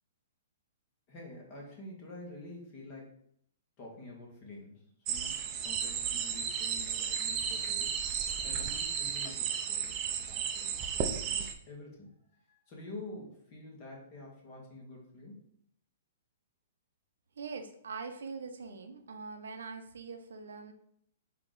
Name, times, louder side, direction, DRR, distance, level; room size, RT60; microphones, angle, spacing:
voice 1, 1.1-3.1 3.8-8.0 8.4-15.4, left 2 dB, 35° left, -2 dB, 1.8 m, -48 dB
sound 1, 5.1-11.5, right 7 dB, 30° right, 0.5 m, -34 dB
voice 2, 17.4-20.7, right 4 dB, 85° right, 7 dB, 0.6 m, -43 dB
4.5 x 2.9 x 3.9 m, 0.69 s
hypercardioid pair, 140°, 0 cm